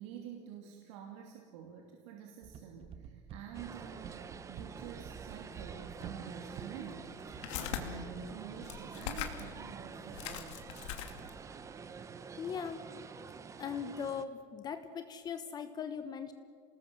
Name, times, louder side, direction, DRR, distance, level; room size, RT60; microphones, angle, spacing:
voice 1, 0.0-10.6, right 7 dB, 85° right, 1 dB, 2.9 m, -48 dB
sound 1, 2.4-7.4, right 8 dB, 40° right, 1.5 m, -49 dB
sound 2, 3.5-14.2, right 5 dB, 20° right, 1.1 m, -48 dB
sound 3, 6.0-6.1 6.8-7.8 8.6-9.5 9.8-9.9 10.1-11.4, left 11 dB, 85° left, 2.6 m, -41 dB
voice 2, 12.4-12.9 13.6-16.3, left 7 dB, 25° left, 9 dB, 1.2 m, -39 dB
28.0 x 19.5 x 7.7 m, 2.3 s
cardioid pair, 155°, 15 cm